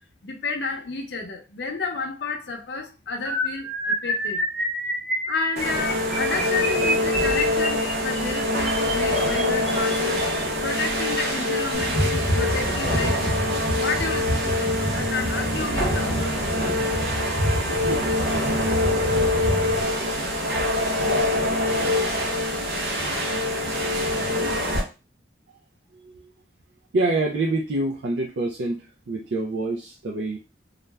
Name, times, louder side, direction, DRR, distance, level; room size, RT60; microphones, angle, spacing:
voice 1, 0.2-4.4 5.3-10.2 10.6-16.8, left 4 dB, 75° left, 0.6 m, -31 dB
sound 1, 3.2-10.4 11.2-11.4 11.7-11.9 12.2-12.4, equal, ahead, 0.5 m, -29 dB
sound 2, 5.6-24.8, left 1 dB, 65° right, 0.8 m, -24 dB
sound 3, 11.7-19.8, equal, 25° left, 0.8 m, -29 dB
voice 2, 26.9-30.4, right 2 dB, 90° right, 0.4 m, -26 dB
2.4 x 2.2 x 3.2 m
head